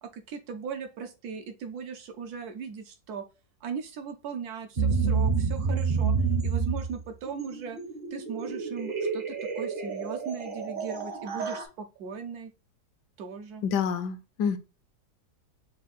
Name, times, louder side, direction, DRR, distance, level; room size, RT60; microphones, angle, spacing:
voice 1, 0.0-3.2 3.6-6.1 6.4-7.8 8.1-12.5 13.2-13.6, right 6 dB, 70° right, 1.0 m, -38 dB
sound 1, 4.8-11.6, right 5 dB, 45° right, 0.7 m, -29 dB
voice 2, 13.6-14.6, left 7 dB, 75° left, 1.1 m, -28 dB
4.5 x 2.4 x 3.9 m
omnidirectional pair, 1.9 m